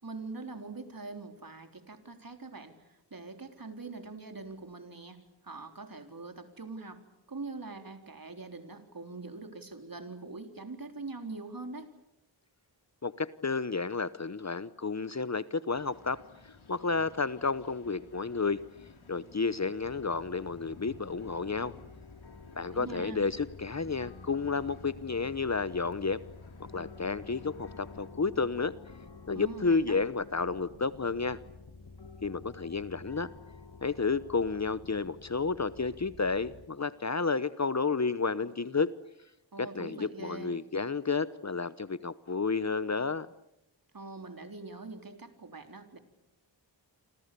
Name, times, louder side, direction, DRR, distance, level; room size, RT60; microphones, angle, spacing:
voice 1, 0.0-11.9 22.6-23.2 29.3-30.0 39.5-40.5 43.9-46.0, right 3 dB, 45° right, 6 dB, 3.8 m, -43 dB
voice 2, 13.0-16.2 16.7-18.6 19.1-21.7 22.5-26.2 26.7-28.7 29.3-31.4 32.2-33.3 33.8-38.9 39.6-43.3, left 4 dB, 35° left, 16 dB, 0.9 m, -31 dB
sound 1, 15.7-28.1, left 4 dB, 85° left, 4.2 m, -55 dB
sound 2, 19.8-36.7, left 4 dB, 60° left, 2.7 m, -50 dB
28.5 x 26.0 x 6.9 m, 0.85 s
cardioid pair, 55°, 46 cm